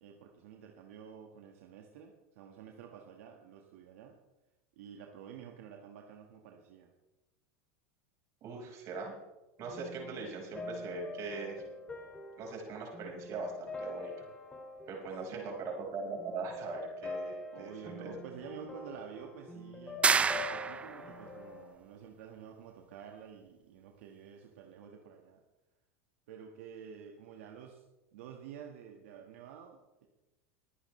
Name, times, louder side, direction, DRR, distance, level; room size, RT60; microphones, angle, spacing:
voice 1, 0.0-4.2 4.7-6.9 15.3-15.6 17.5-25.4 26.3-27.8 28.1-30.1, right 7 dB, 75° right, 2 dB, 1.6 m, -50 dB
voice 2, 8.4-9.1 9.6-11.6 12.4-14.3 14.9-18.1, right 4 dB, 45° right, 0 dB, 5.1 m, -41 dB
sound 1, 9.6-21.7, left 2 dB, 15° left, 2.3 m, -45 dB
sound 2, 20.0-21.1, right 5 dB, 15° right, 0.4 m, -28 dB
22.0 x 9.9 x 3.2 m, 1.0 s
supercardioid pair, 120°, 7 cm